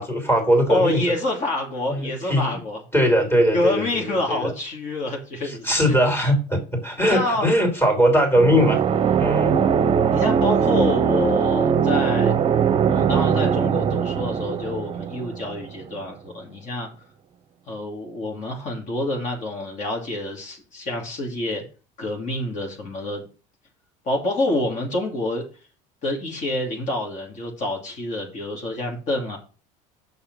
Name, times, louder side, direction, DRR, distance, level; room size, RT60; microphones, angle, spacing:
voice 1, 0.0-1.2 1.9-2.5 2.9-4.5 5.4-8.8 9.2-9.6, equal, 15° left, 2.9 m, -20 dB
voice 2, 0.7-2.8 3.5-6.0 7.0-7.6 10.1-12.3 12.8-16.9 17.7-21.6 22.0-23.3 24.0-25.4 26.0-29.4, left 1 dB, 45° left, 2.7 m, -27 dB
sound 1, 8.4-16.0, right 7 dB, 35° right, 0.8 m, -21 dB
6.6 x 5.8 x 5.5 m
supercardioid pair, 105°, 17 cm